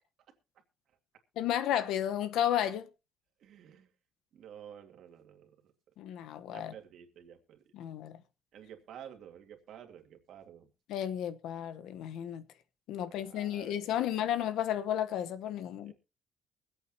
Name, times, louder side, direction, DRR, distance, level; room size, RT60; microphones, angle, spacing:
voice 1, 1.4-2.9 6.0-6.7 7.7-8.2 10.9-12.4 12.9-15.9, left 11 dB, 75° left, 1.0 m, -33 dB
voice 2, 3.4-3.9 4.3-5.5 6.5-7.6 8.5-10.7 13.2-14.2 15.9-16.0, right 9 dB, 55° right, 2.1 m, -51 dB
23.5 x 8.5 x 2.8 m
cardioid pair, 180°, 0 cm